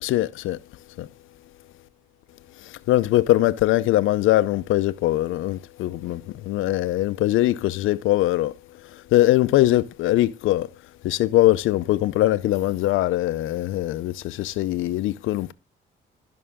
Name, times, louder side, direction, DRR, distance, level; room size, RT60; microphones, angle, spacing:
voice 1, 0.0-0.6 1.0-1.1 2.9-8.5 9.1-10.7 11.0-15.5, left 15 dB, 85° left, 0.6 m, -21 dB
13.5 x 5.7 x 3.5 m
cardioid pair, 90°, 20 cm